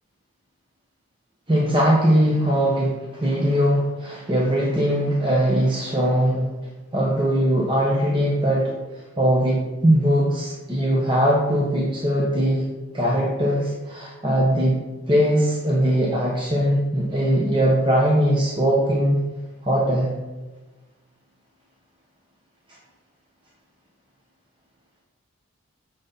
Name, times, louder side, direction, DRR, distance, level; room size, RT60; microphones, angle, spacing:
voice 1, 1.5-6.5 6.9-12.6 12.9-14.8 15.1-19.2 19.6-20.1, equal, 20° right, -3 dB, 1.2 m, -20 dB
9.6 x 7.4 x 4.1 m, 1.2 s
head